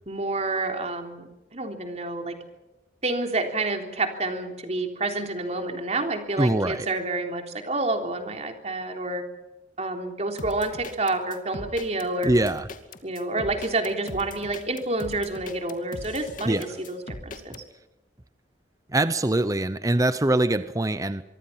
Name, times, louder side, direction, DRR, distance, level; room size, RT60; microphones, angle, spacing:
voice 1, 0.1-2.4 3.0-9.2 9.8-12.3 13.0-17.6, right 2 dB, 40° right, 4 dB, 3.6 m, -29 dB
voice 2, 6.4-6.9 12.3-12.7 16.5-16.6 18.9-21.2, right 1 dB, 20° right, 13 dB, 0.7 m, -23 dB
sound 1, 10.4-17.6, left 2 dB, 50° left, 2.4 m, -39 dB
25.0 x 23.5 x 5.8 m, 1.0 s
head